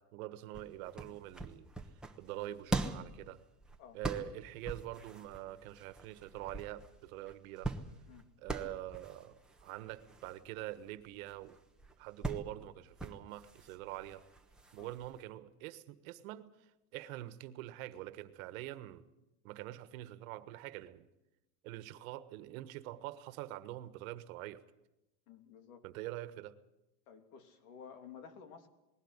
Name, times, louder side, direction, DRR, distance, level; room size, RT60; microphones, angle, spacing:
voice 1, 0.0-1.7 2.2-3.4 3.9-7.7 8.4-11.6 12.0-14.2 14.7-19.1 19.4-21.1 21.6-24.6 25.8-26.5, right 15 dB, 65° right, 13 dB, 1.5 m, -45 dB
sound 1, 0.5-15.2, right 2 dB, ahead, 1.1 m, -43 dB
voice 2, 25.3-25.9 27.1-28.7, left 7 dB, 75° left, 7 dB, 3.1 m, -53 dB
20.5 x 16.0 x 9.8 m, 0.95 s
supercardioid pair, 160°, 44 cm